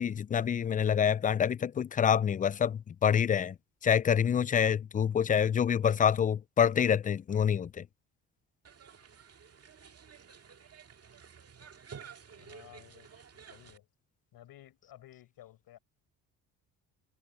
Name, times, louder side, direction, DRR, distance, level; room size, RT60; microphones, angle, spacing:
voice 1, 0.0-3.5 3.8-7.8, left 8 dB, 20° left, 0.3 m, -27 dB
sound 1, 8.7-13.8, right 6 dB, 40° right, 2.0 m, -52 dB
voice 2, 12.3-13.1 13.5-13.9 14.3-15.8, left 13 dB, 70° left, 4.7 m, -54 dB
supercardioid pair, 65°, 39 cm